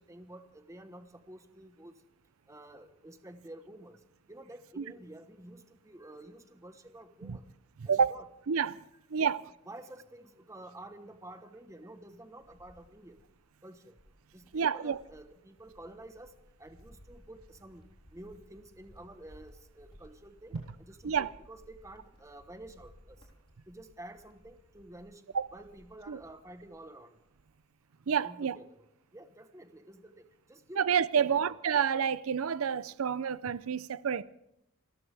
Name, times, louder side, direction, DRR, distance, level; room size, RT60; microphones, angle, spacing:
voice 1, 0.0-1.9 2.5-4.0 4.3-7.4 7.9-8.2 9.2-9.3 9.7-13.2 13.6-13.9 14.3-16.3 16.6-23.2 23.7-25.2 25.5-27.1 28.2-28.6 29.1-30.8 31.1-31.6, right 1 dB, 15° right, 1.1 m, -50 dB
voice 2, 7.8-8.1 8.5-8.8 9.1-9.4 14.5-15.0 21.0-21.3 25.3-25.5 26.1-26.2 28.1-28.6 30.8-34.2, right 7 dB, 70° right, 0.5 m, -29 dB
Cricket, 11.9-13.4 13.9-26.9 27.2-27.7, equal, 25° left, 3.8 m, -59 dB
28.0 x 14.0 x 3.4 m
head